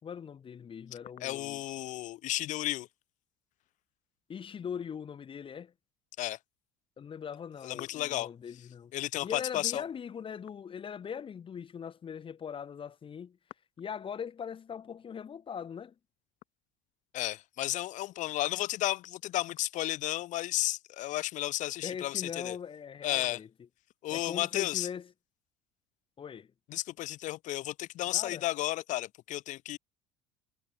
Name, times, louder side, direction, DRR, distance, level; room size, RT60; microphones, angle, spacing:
voice 1, 0.0-1.6 4.3-5.7 7.0-8.9 9.2-13.4 13.8-15.9 21.8-23.5 24.1-25.0 26.2-26.5 28.1-28.4, left 7 dB, 35° left, 3.4 m, -41 dB
voice 2, 1.2-2.9 6.2-6.4 7.6-8.3 8.9-9.8 17.1-22.6 23.0-23.4 24.0-24.9 26.7-29.8, left 15 dB, 55° left, 2.3 m, -33 dB
hypercardioid pair, 70°, 16 cm